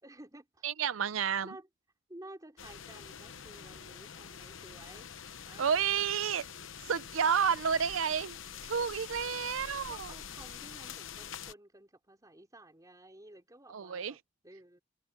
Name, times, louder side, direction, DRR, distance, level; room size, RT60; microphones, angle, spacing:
voice 1, 0.0-0.6 1.4-1.7 2.1-5.1 5.4-5.9 9.3-9.5 9.9-14.8, right 1 dB, 20° right, 3.7 m, -53 dB
voice 2, 0.6-1.5 5.6-6.4 6.9-8.4 8.6-10.1 13.7-14.1, right 7 dB, 85° right, 0.6 m, -30 dB
sound 1, 2.6-11.5, left 8 dB, 70° left, 1.0 m, -46 dB
head